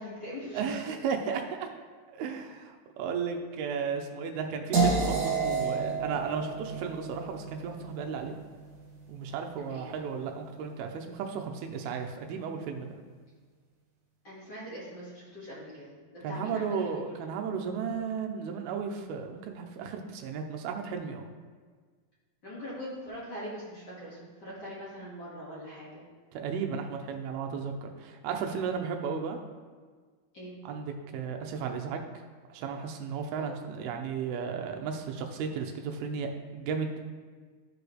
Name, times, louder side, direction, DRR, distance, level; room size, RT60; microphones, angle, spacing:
voice 1, 0.0-0.6 5.6-5.7 9.6-9.9 14.2-17.3 22.4-26.0 30.3-30.6 33.3-33.6, equal, 40° left, -8 dB, 1.6 m, -42 dB
voice 2, 0.5-1.7 2.1-8.4 9.1-12.9 16.2-21.3 26.3-29.4 30.7-32.0 32.5-37.1, right 6 dB, 85° right, 3 dB, 2.6 m, -34 dB
sound 1, 4.7-10.6, right 4 dB, 60° right, 2.5 m, -32 dB
13.0 x 5.0 x 3.2 m, 1.5 s
omnidirectional pair, 4.6 m